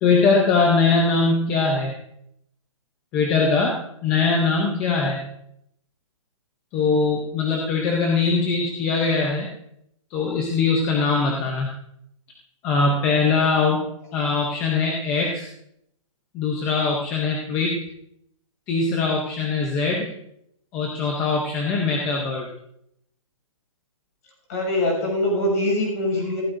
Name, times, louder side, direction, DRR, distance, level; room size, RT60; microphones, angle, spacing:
voice 1, 0.0-1.9 3.1-5.2 6.7-9.5 10.1-11.7 12.6-13.8 14.1-15.5 16.3-17.8 18.7-20.1 20.7-22.5, left 4 dB, 10° left, 0 dB, 0.6 m, -21 dB
voice 2, 24.5-26.4, left 1 dB, 30° left, 0 dB, 6.5 m, -23 dB
19.0 x 15.5 x 2.6 m, 0.76 s
hypercardioid pair, 175°, 17 cm